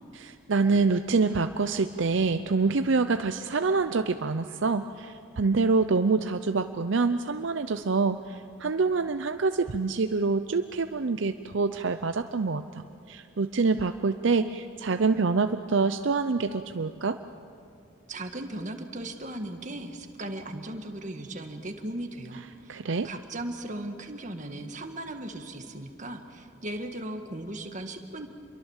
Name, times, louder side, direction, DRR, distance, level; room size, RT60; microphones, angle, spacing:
voice 1, 0.3-12.6 13.1-17.2 22.7-23.1, right 4 dB, 65° right, 9 dB, 0.6 m, -26 dB
voice 2, 18.1-22.8 23.0-28.3, right 1 dB, 35° right, 5 dB, 1.7 m, -37 dB
27.5 x 23.0 x 7.3 m, 2.6 s
head